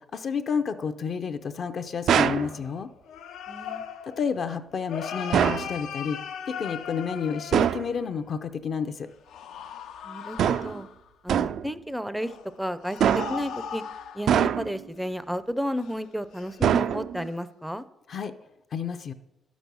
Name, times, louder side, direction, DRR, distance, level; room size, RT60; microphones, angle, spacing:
voice 1, 0.1-2.9 4.2-6.2 6.5-9.1 18.1-18.3 18.7-19.1, left 6 dB, 45° left, 8 dB, 0.5 m, -30 dB
sound 1, 2.1-8.2 9.3-11.1 12.2-14.6 15.0-15.1 15.8-16.0 16.3-16.7 17.2-17.3, left 7 dB, 85° left, 0.7 m, -39 dB
sound 2, 2.1-2.5 5.3-5.7 7.5-7.9 10.4-10.8 11.3-11.7 13.0-13.5 14.3-14.9 16.6-17.3, right 9 dB, 65° right, 0.3 m, -23 dB
voice 2, 3.5-3.8 10.0-10.9 11.2-12.3 12.6-13.8 14.1-17.8, equal, ahead, 13 dB, 0.5 m, -32 dB
11.5 x 6.2 x 6.8 m, 0.92 s
cardioid pair, 145°, 0 cm